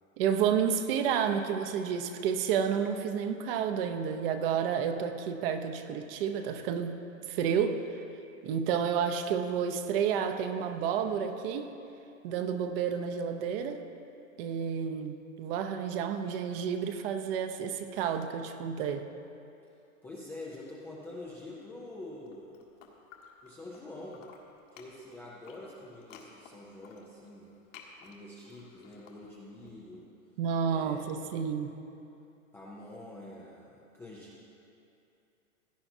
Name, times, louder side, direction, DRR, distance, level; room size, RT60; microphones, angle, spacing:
voice 1, 0.2-7.0 7.3-7.8 8.4-11.7 12.2-13.8 14.4-19.0 30.4-31.7, right 7 dB, 45° right, 8 dB, 0.8 m, -30 dB
voice 2, 20.0-22.5 23.4-24.3 24.7-27.5 28.0-30.1 30.7-31.5 32.5-34.5, left 2 dB, 5° left, -6 dB, 0.3 m, -46 dB
sound 1, 22.1-23.8 24.1-29.7, left 6 dB, 65° left, 1.8 m, -55 dB
17.0 x 9.6 x 2.7 m, 2.7 s
hypercardioid pair, 135°, 40 cm